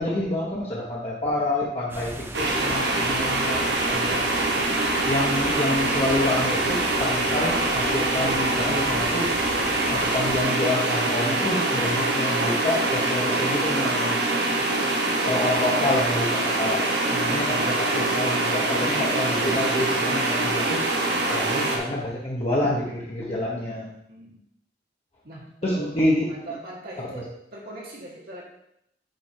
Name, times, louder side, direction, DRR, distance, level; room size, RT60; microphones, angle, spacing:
voice 1, 0.0-2.1 2.4-4.2 5.1-9.3 9.9-14.2 15.2-20.8 21.3-23.9 25.6-26.3, left 1 dB, 35° left, -5 dB, 1.1 m, -27 dB
sound 1, 1.9-10.4, right 1 dB, 15° right, 0.5 m, -38 dB
sound 2, 2.3-21.8, right 2 dB, 75° right, 1.2 m, -24 dB
voice 2, 24.1-24.4 25.2-25.9 26.3-28.4, right 2 dB, 60° right, -4 dB, 1.7 m, -41 dB
7.8 x 3.5 x 4.6 m, 0.77 s
head